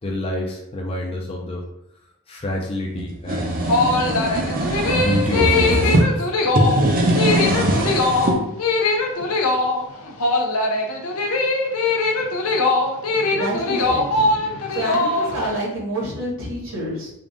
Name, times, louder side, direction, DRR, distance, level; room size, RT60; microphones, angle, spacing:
voice 1, 0.0-1.6 2.3-3.5 5.0-6.3, left 1 dB, 25° left, -1 dB, 0.5 m, -28 dB
sound 1, 3.0-6.0 6.5-8.4, right 1 dB, 40° right, 0.6 m, -21 dB
sound 2, 3.4-15.6, left 3 dB, 75° left, 0.6 m, -21 dB
voice 2, 13.3-14.3 14.7-17.1, right 1 dB, 60° right, -4 dB, 1.4 m, -28 dB
3.7 x 2.4 x 3.6 m, 0.81 s
head